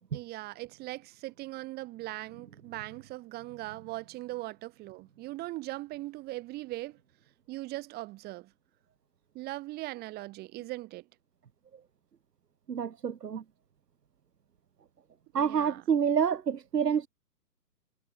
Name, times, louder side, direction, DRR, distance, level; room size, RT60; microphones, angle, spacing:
voice 1, 0.1-7.0 7.5-8.5 9.3-11.1 15.3-15.8, right 18 dB, 20° right, 3.7 m, -40 dB
voice 2, 12.7-13.4 15.3-17.1, right 7 dB, 75° right, 1.9 m, -28 dB
hypercardioid pair, 145°, 49 cm